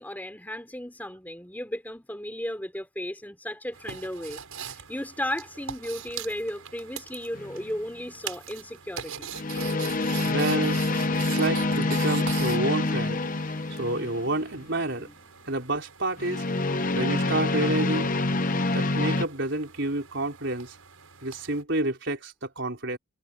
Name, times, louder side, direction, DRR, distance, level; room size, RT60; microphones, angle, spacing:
voice 1, 0.0-4.4 4.7-9.3 15.0-15.1, left 1 dB, 10° left, 3.7 m, -35 dB
sound 1, 3.7-21.6, right 8 dB, 80° right, 6.1 m, -42 dB
sound 2, 7.4-7.7 9.3-14.4 16.2-19.3, left 2 dB, 40° left, 0.9 m, -26 dB
voice 2, 10.2-10.9 11.3-13.2 13.8-15.1 15.5-16.4 16.9-18.1 18.7-20.8 21.2-23.0, right 2 dB, 55° right, 4.9 m, -29 dB
head